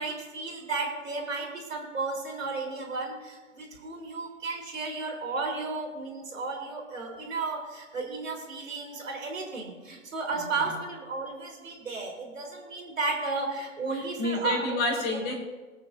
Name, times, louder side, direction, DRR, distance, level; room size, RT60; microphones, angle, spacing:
voice 1, 0.0-14.8, right 3 dB, 75° right, 0 dB, 3.6 m, -33 dB
voice 2, 13.9-15.4, left 2 dB, 25° left, 3 dB, 2.2 m, -29 dB
23.5 x 8.3 x 2.6 m, 1.3 s
hypercardioid pair, 135°, 39 cm